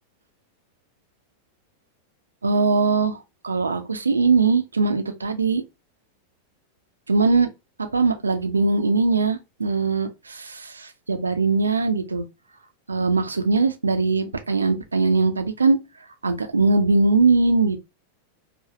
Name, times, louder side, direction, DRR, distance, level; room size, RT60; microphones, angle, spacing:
voice 1, 2.4-3.2 3.4-5.6 7.1-7.5 7.9-12.2 12.9-15.8 16.2-17.8, right 3 dB, 75° right, 0.6 m, -21 dB
4.9 x 2.0 x 3.0 m
figure-of-eight pair, 90°, 0 cm